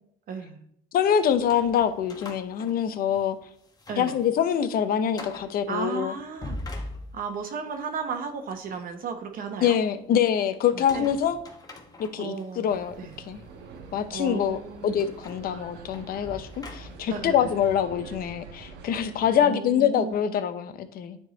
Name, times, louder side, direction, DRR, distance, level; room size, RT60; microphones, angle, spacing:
voice 1, 0.3-0.6 3.9-4.2 5.7-6.6 7.1-9.8 10.8-11.1 12.2-13.1 14.1-15.0 17.1-17.5 19.4-20.2, right 5 dB, 55° right, 6 dB, 0.9 m, -34 dB
voice 2, 0.9-3.4 4.0-6.1 9.6-11.4 12.0-12.9 13.3-13.4 13.9-21.2, left 9 dB, 60° left, 11 dB, 0.7 m, -25 dB
sound 1, 1.3-3.3 3.7-4.3 4.6-4.7 5.1-5.5 6.2-7.5 10.7-12.4 13.1-13.2 15.0-17.2, left 2 dB, 20° left, 1.1 m, -42 dB
sound 2, 12.7-19.3, right 4 dB, 90° right, 1.1 m, -45 dB
9.4 x 3.5 x 4.0 m, 0.70 s
cardioid pair, 110°, 17 cm